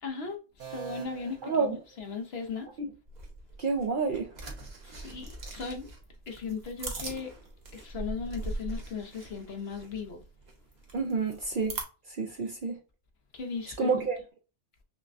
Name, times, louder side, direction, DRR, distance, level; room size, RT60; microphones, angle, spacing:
voice 1, 0.0-2.7 4.8-5.9 6.3-7.3 7.7-10.2 13.3-14.0, left 5 dB, 60° left, 1.1 m, -37 dB
sound 1, 0.6-2.5, right 9 dB, 80° right, 1.5 m, -45 dB
voice 2, 1.4-1.8 2.8-2.9 3.6-4.3 10.9-11.8 12.1-12.8 13.8-14.2, right 4 dB, 55° right, 0.6 m, -29 dB
sound 2, 3.1-11.8, right 2 dB, 40° right, 1.0 m, -41 dB
5.7 x 2.2 x 2.5 m
omnidirectional pair, 1.2 m